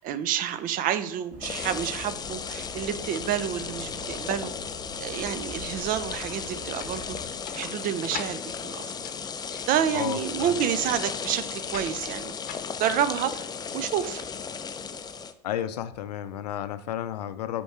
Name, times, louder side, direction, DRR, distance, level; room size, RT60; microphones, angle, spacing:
voice 1, 0.0-4.5 5.0-7.2 7.5-8.9 9.7-12.3 12.8-14.2, right 9 dB, 40° right, 13 dB, 0.5 m, -29 dB
sound 1, 1.3-7.3, left 1 dB, 80° right, 2.3 m, -45 dB
sound 2, 1.4-15.3, left 6 dB, 20° left, 0.5 m, -35 dB
sound 3, 6.8-14.6, left 8 dB, 45° left, 0.8 m, -45 dB
voice 2, 9.9-10.6 15.4-17.6, left 10 dB, 75° left, 12 dB, 0.5 m, -32 dB
5.6 x 4.5 x 4.2 m, 0.79 s
hypercardioid pair, 80°, 21 cm